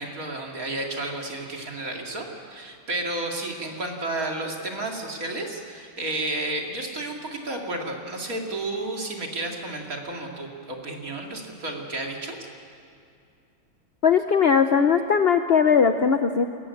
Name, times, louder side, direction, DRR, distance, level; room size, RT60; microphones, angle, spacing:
voice 1, 0.0-12.4, right 2 dB, 45° right, 1 dB, 3.0 m, -32 dB
voice 2, 14.0-16.5, left 6 dB, 65° left, 8 dB, 0.6 m, -19 dB
28.5 x 14.5 x 8.6 m, 2.5 s
omnidirectional pair, 2.1 m